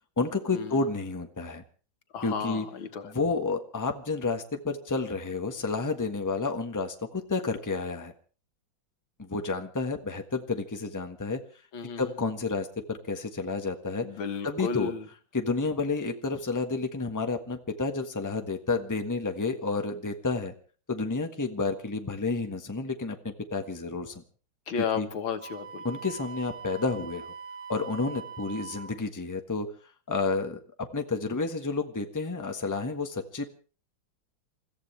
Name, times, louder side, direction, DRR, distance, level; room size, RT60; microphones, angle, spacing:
voice 1, 0.2-1.6 2.2-2.7 3.0-8.1 9.2-11.4 12.0-14.1 14.4-14.9 15.3-20.5 20.9-24.2 25.0-25.1 25.8-27.3 27.7-29.7 30.1-33.5, left 3 dB, 10° left, 5 dB, 1.2 m, -30 dB
voice 2, 2.1-3.1 11.7-12.1 14.0-15.1 24.7-25.8, left 6 dB, 85° left, 8 dB, 2.2 m, -33 dB
Wind instrument woodwind instrument, 25.4-29.0, right 5 dB, 70° right, 3.2 m, -42 dB
29.0 x 14.5 x 3.3 m, 0.38 s
omnidirectional pair, 2.1 m